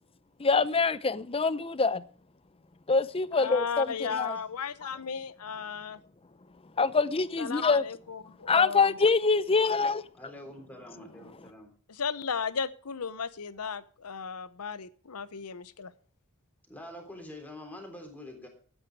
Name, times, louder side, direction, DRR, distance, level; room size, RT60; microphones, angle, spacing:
voice 1, 0.4-2.0 2.9-4.4 6.8-7.8 8.5-10.0, left 4 dB, 25° left, 0.6 m, -25 dB
voice 2, 3.3-6.0 7.4-8.9 11.9-15.9, left 6 dB, 90° left, 0.8 m, -35 dB
voice 3, 10.1-11.7 16.7-18.5, left 1 dB, 5° left, 3.5 m, -45 dB
13.0 x 9.1 x 4.7 m
head